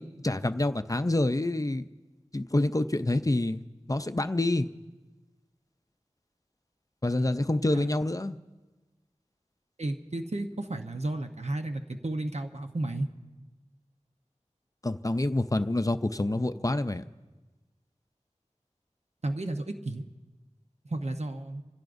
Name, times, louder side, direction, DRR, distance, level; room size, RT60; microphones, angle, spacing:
voice 1, 0.0-1.9 2.3-3.6 3.9-4.7 7.0-8.4 14.8-17.0, left 2 dB, 30° left, 10 dB, 0.5 m, -27 dB
voice 2, 9.8-13.1 19.2-20.0 20.9-21.6, right 2 dB, 65° right, 5 dB, 0.9 m, -33 dB
26.5 x 15.5 x 2.6 m, 1.2 s
wide cardioid pair, 45°, 12 cm